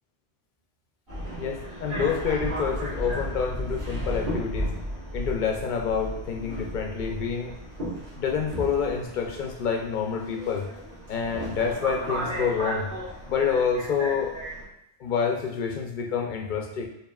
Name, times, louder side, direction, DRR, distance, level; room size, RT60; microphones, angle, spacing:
Subway metro underground, 1.1-14.6, equal, 55° right, 1.4 m, -34 dB
voice 1, 1.4-4.7 5.1-7.6 8.2-10.7 11.1-12.9 13.3-14.4 15.0-16.9, left 6 dB, 55° left, 2 dB, 0.6 m, -27 dB
4.8 x 2.8 x 2.3 m, 0.79 s
omnidirectional pair, 1.1 m